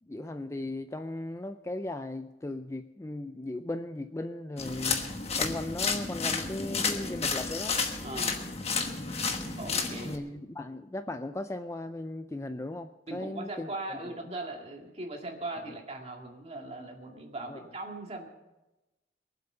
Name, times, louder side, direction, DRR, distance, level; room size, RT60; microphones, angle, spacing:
voice 1, 0.0-5.1 5.4-7.8 10.0-14.0 17.5-17.7, left 1 dB, 15° left, 9 dB, 0.4 m, -37 dB
sound 1, 4.6-10.2, left 5 dB, 35° left, 1.2 m, -31 dB
voice 2, 8.0-8.4 9.6-10.2 13.1-18.3, right 2 dB, 35° right, 1 dB, 2.2 m, -39 dB
22.5 x 7.9 x 5.6 m, 1.0 s
head